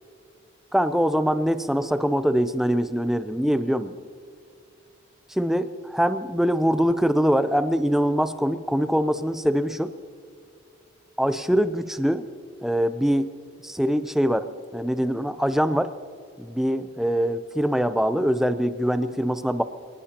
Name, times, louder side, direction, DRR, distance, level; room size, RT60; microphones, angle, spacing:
voice 1, 0.7-3.9 5.3-9.9 11.2-12.2 12.6-13.3 13.6-14.5 14.7-15.9 16.4-19.6, equal, ahead, 10 dB, 0.5 m, -23 dB
26.5 x 19.0 x 2.9 m, 2.3 s
head